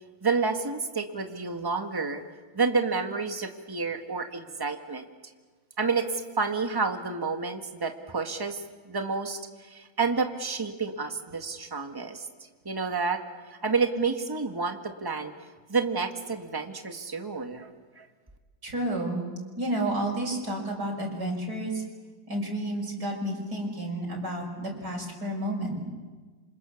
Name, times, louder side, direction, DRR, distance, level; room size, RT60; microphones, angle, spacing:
voice 1, 0.2-2.2 2.5-5.1 5.8-12.2 12.7-13.2 13.6-15.3 15.7-17.7 18.0-18.1, right 4 dB, 10° right, 5 dB, 1.6 m, -29 dB
voice 2, 18.6-19.2 19.6-21.8 22.3-25.8, right 1 dB, 55° right, -1 dB, 6.6 m, -31 dB
28.0 x 26.5 x 7.2 m, 1.4 s
omnidirectional pair, 2.1 m